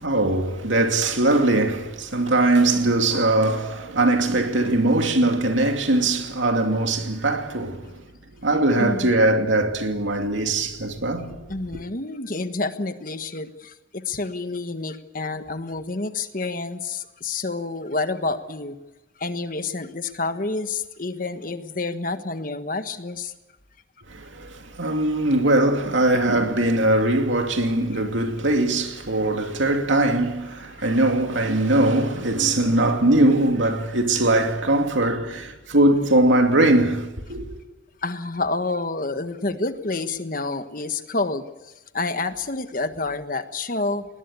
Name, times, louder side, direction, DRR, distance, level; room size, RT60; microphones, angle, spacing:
voice 1, 0.0-8.0 8.4-11.5 24.1-37.5, right 2 dB, 85° right, 2.7 m, -21 dB
voice 2, 8.8-9.1 11.5-18.8 19.2-23.3 32.7-32.8 38.0-44.1, left 3 dB, 45° left, 1.4 m, -29 dB
20.5 x 20.0 x 8.4 m
head